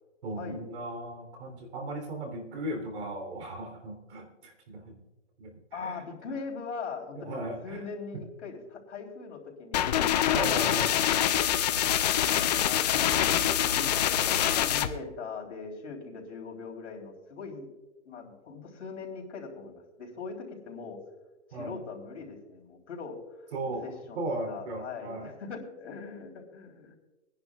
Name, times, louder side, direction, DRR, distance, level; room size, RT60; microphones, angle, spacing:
voice 1, 0.2-5.0 5.4-6.0 7.1-7.9 10.3-10.9 21.5-21.8 23.5-23.8 24.1-25.3, right 1 dB, 60° right, 4 dB, 3.4 m, -36 dB
voice 2, 5.7-10.0 10.4-10.6 10.9-11.2 12.2-17.7 18.1-21.0 21.5-23.2 23.8-27.0, left 5 dB, 70° left, -1 dB, 3.7 m, -41 dB
sound 1, 9.7-14.9, left 11 dB, 35° left, 0.6 m, -25 dB
24.5 x 10.5 x 2.4 m, 1.1 s
hypercardioid pair, 150°, 37 cm